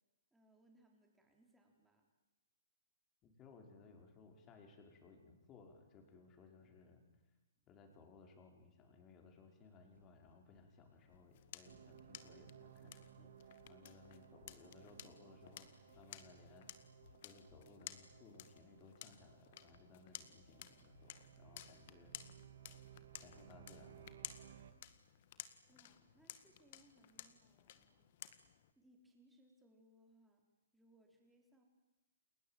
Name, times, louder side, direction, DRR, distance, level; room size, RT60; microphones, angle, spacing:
voice 1, 0.3-2.1 7.5-7.7 25.7-28.4 28.7-30.5 30.7-31.6, right 1 dB, 5° right, 1 dB, 5.0 m, -70 dB
voice 2, 3.2-7.0 7.7-16.7 17.2-21.1 21.4-22.1 23.2-24.1 24.4-24.6, left 4 dB, 20° left, 3 dB, 5.2 m, -62 dB
sound 1, 9.9-22.8, left 6 dB, 75° left, 2.0 m, -73 dB
sound 2, 11.0-28.7, left 12 dB, 45° left, 1.9 m, -56 dB
sound 3, 11.6-24.7, right 9 dB, 65° right, 3.0 m, -61 dB
30.0 x 20.5 x 9.2 m, 1.1 s
hypercardioid pair, 155°, 0 cm